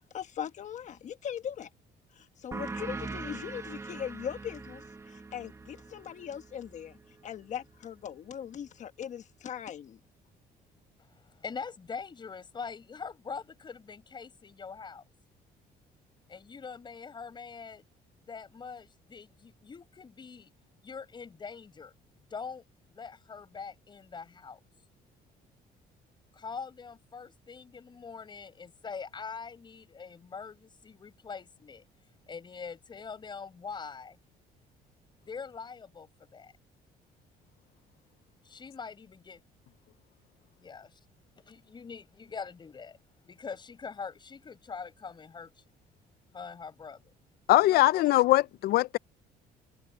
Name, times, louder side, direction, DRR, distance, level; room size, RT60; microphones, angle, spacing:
voice 1, 0.1-1.7 2.1-7.0 7.2-10.0, left 9 dB, 45° left, 1.2 m, -40 dB
sound 1, 2.5-7.7, right 3 dB, 15° right, 1.5 m, -42 dB
voice 2, 11.0-15.0 16.3-17.8 18.3-20.5 20.8-21.9 22.3-24.6 26.3-31.9 32.3-34.2 35.2-36.5 38.4-39.4 40.6-41.0 41.4-43.0 43.2-45.6 46.3-47.0 47.6-48.1, left 5 dB, 30° left, 7.2 m, -43 dB
voice 3, 47.5-49.0, left 16 dB, 70° left, 0.5 m, -22 dB
cardioid pair, 145°, 16 cm